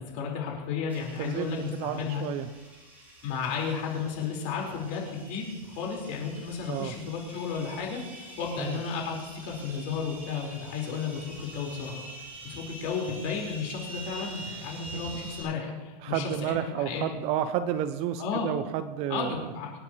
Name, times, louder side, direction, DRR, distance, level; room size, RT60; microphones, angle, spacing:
voice 1, 0.0-2.2 3.2-17.0 18.2-18.5 19.1-19.7, left 6 dB, 45° left, -1 dB, 5.0 m, -33 dB
sound 1, 0.9-15.4, right 1 dB, 10° right, 5.6 m, -46 dB
voice 2, 1.2-2.5 6.7-6.9 8.6-8.8 16.0-19.5, right 10 dB, 30° right, 11 dB, 0.6 m, -31 dB
27.0 x 9.7 x 3.3 m, 1.2 s
supercardioid pair, 165°, 20 cm